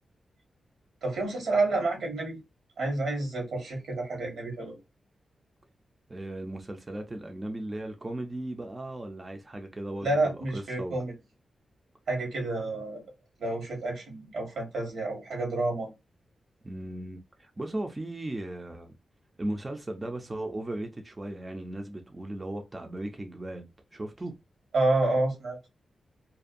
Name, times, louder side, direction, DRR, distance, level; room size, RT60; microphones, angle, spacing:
voice 1, 1.0-2.4 2.8-4.7 10.0-11.1 12.1-13.0 13.4-15.9 24.7-25.6, right 2 dB, 85° right, 1.2 m, -29 dB
voice 2, 6.1-11.0 16.6-18.9 19.4-24.4, right 1 dB, 20° right, 0.4 m, -37 dB
2.5 x 2.2 x 2.5 m
wide cardioid pair, 125°, 0 cm